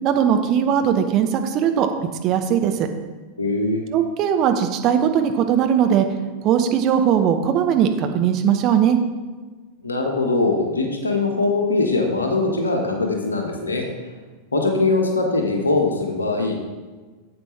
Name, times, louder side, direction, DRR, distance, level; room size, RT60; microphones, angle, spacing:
voice 1, 0.0-1.9 2.2-2.9 3.9-6.1 6.4-9.0, right 8 dB, 35° right, 6 dB, 0.9 m, -19 dB
voice 2, 3.4-3.8 9.8-13.9 14.5-16.6, left 3 dB, 75° left, 2 dB, 1.5 m, -21 dB
9.4 x 8.1 x 3.3 m, 1.3 s
figure-of-eight pair, 90°, 0 cm